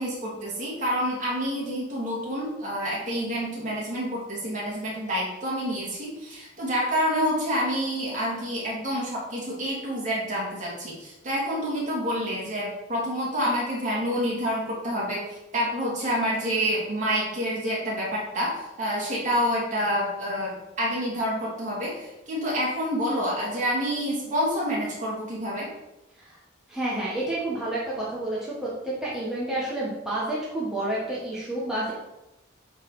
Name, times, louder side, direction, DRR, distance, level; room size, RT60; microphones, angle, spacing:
voice 1, 0.0-25.7, equal, 40° right, -5 dB, 2.7 m, -28 dB
voice 2, 26.7-31.9, right 1 dB, 5° right, -8 dB, 1.5 m, -29 dB
8.8 x 4.3 x 4.9 m, 0.96 s
head